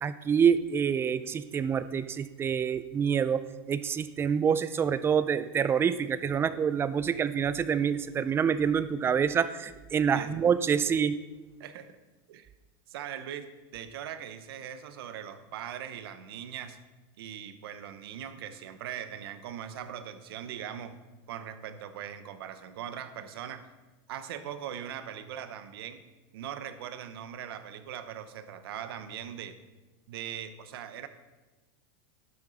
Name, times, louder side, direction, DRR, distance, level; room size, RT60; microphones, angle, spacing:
voice 1, 0.0-11.2, right 7 dB, 20° right, 14 dB, 0.4 m, -27 dB
voice 2, 12.9-16.8 17.2-21.0 21.3-23.7 24.1-26.0 26.3-29.6 30.1-31.1, right 9 dB, 80° right, 11 dB, 0.9 m, -40 dB
11.5 x 7.9 x 4.0 m, 1.2 s
supercardioid pair, 135°, 12 cm